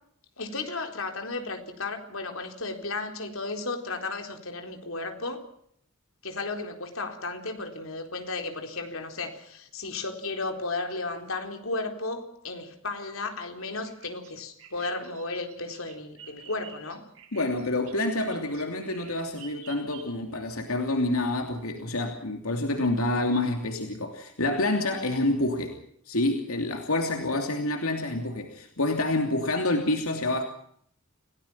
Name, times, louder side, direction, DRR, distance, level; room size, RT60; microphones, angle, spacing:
voice 1, 0.4-5.4 6.2-17.0, left 3 dB, 70° left, 5 dB, 4.2 m, -34 dB
Bird vocalization bird call bird song, 13.8-20.4, right 6 dB, 70° right, 6.4 m, -50 dB
voice 2, 17.3-25.8 26.1-30.4, left 2 dB, 90° left, 4 dB, 2.9 m, -27 dB
29.5 x 17.5 x 5.7 m, 0.66 s
head